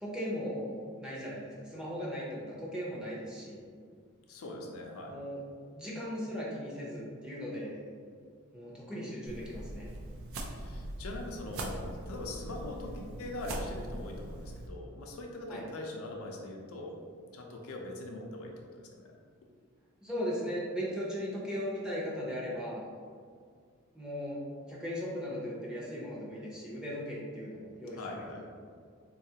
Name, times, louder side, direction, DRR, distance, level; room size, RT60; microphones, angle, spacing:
voice 1, 0.0-3.6 5.1-5.4 5.7-7.8 8.5-9.9 15.5-15.6 20.0-22.8 23.9-24.4 24.7-28.5, equal, 5° right, -7 dB, 0.6 m, -38 dB
voice 2, 4.3-5.1 10.5-16.9 17.3-19.1 28.0-28.4, left 2 dB, 70° left, 0 dB, 0.5 m, -42 dB
sound 1, 9.3-14.7, right 1 dB, 65° right, 0.4 m, -41 dB
3.8 x 2.4 x 2.7 m, 2.1 s
head